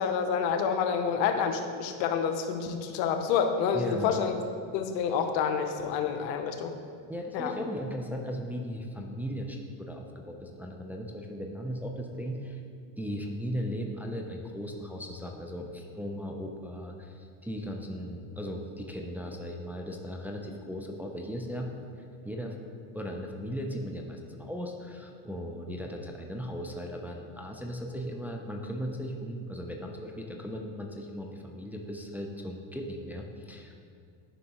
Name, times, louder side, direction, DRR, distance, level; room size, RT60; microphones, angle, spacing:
voice 1, 0.0-4.3 4.7-6.7 7.3-7.5, left 6 dB, 85° left, 6 dB, 0.8 m, -28 dB
voice 2, 3.7-4.1 7.1-12.6 13.0-21.7 22.2-22.6 22.9-33.8, equal, 5° right, 1 dB, 0.4 m, -37 dB
10.0 x 5.2 x 3.0 m, 2.3 s
supercardioid pair, 100°, 49 cm